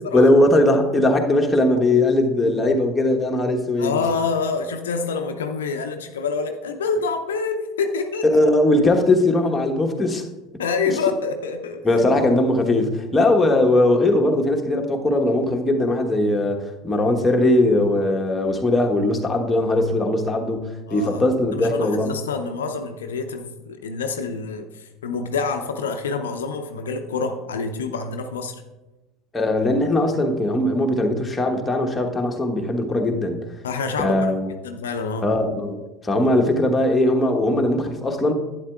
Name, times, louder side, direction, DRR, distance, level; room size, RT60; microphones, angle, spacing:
voice 1, 0.1-4.0 8.2-10.2 11.8-20.6 20.9-22.1 29.3-33.4 34.0-34.5 35.2-35.8 36.0-38.3, left 1 dB, 15° left, 2 dB, 1.2 m, -19 dB
voice 2, 3.8-8.3 10.6-11.8 20.9-21.2 21.5-28.6 33.6-34.3 34.6-35.3, left 4 dB, 75° left, 6 dB, 0.6 m, -27 dB
11.5 x 8.8 x 2.4 m, 1.1 s
figure-of-eight pair, 70°, 0 cm